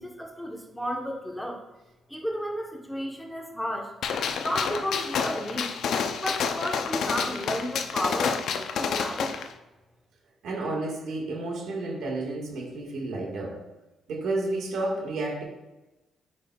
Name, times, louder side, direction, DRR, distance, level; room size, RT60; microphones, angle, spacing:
voice 1, 0.0-1.6 2.1-3.9 4.4-5.7 6.2-9.4, equal, 5° left, 1 dB, 1.0 m, -32 dB
Gunshot gunfire, 4.0-9.5, left 6 dB, 70° left, 0.5 m, -29 dB
voice 2, 10.4-13.6 14.1-15.4, right 2 dB, 75° right, -1 dB, 1.6 m, -31 dB
8.5 x 5.3 x 2.3 m, 1.0 s
cardioid pair, 90°, 0 cm